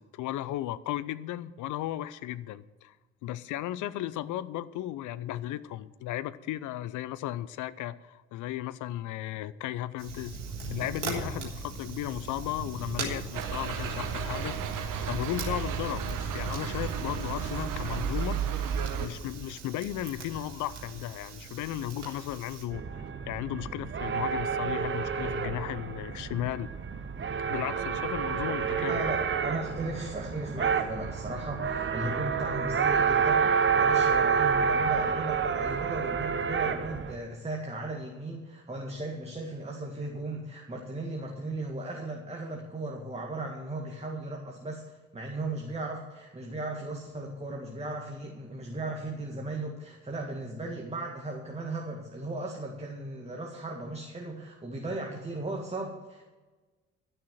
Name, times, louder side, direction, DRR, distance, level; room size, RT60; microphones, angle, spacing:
voice 1, 0.0-2.9 3.2-10.4 10.7-14.6 15.0-26.7 27.5-29.1, left 13 dB, 55° left, 17 dB, 0.6 m, -35 dB
Fire, 10.0-22.6, right 3 dB, 90° right, 1.8 m, -40 dB
sound 1, 13.3-19.1, right 7 dB, 60° right, 1.3 m, -33 dB
sound 2, 22.7-37.2, right 6 dB, 30° right, 1.0 m, -29 dB
voice 2, 28.8-56.2, right 2 dB, 15° right, 0 dB, 1.9 m, -36 dB
12.5 x 6.6 x 7.7 m, 1.2 s
hypercardioid pair, 50°, 36 cm